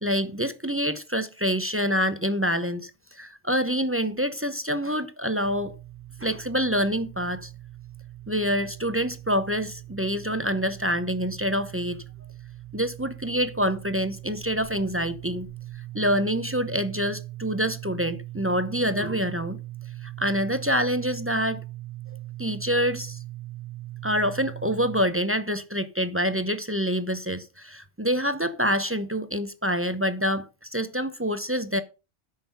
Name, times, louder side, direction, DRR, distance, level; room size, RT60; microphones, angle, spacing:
voice 1, 0.0-5.8 6.2-7.5 8.3-12.0 12.7-15.5 15.9-19.6 20.0-21.6 22.4-23.2 24.0-31.8, equal, 15° right, 0.6 m, -26 dB
sound 1, 5.4-25.0, right 16 dB, 50° right, 0.9 m, -41 dB
9.1 x 6.5 x 5.5 m
omnidirectional pair, 1.1 m